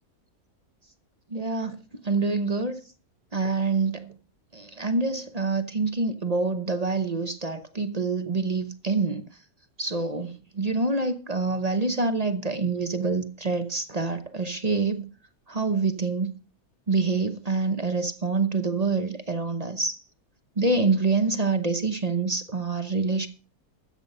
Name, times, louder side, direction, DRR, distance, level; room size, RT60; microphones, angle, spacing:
voice 1, 1.3-1.8 2.0-2.8 3.3-4.1 4.5-9.2 9.8-15.1 15.5-16.3 16.9-20.0 20.6-23.3, right 3 dB, 35° right, 0.8 m, -26 dB
13.5 x 8.0 x 5.4 m
omnidirectional pair, 1.6 m